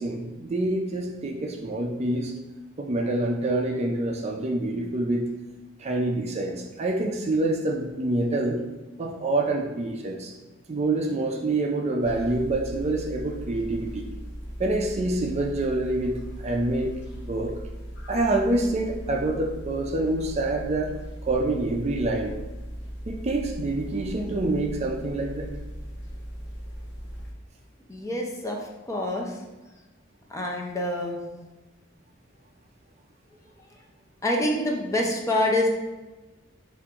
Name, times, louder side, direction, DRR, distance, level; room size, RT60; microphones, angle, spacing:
voice 1, 0.0-2.3 2.8-5.3 5.8-8.6 9.0-10.3 10.7-14.1 14.6-16.9 17.3-17.5 18.1-20.9 21.2-22.3 23.1-25.5, right 2 dB, 35° right, 1 dB, 0.4 m, -26 dB
sound 1, 12.0-27.3, equal, 60° left, 0.7 m, -38 dB
voice 2, 27.9-28.6 28.9-29.4 30.3-31.2 34.2-35.7, left 1 dB, 15° left, -1 dB, 0.5 m, -26 dB
4.4 x 2.5 x 3.5 m, 1.1 s
head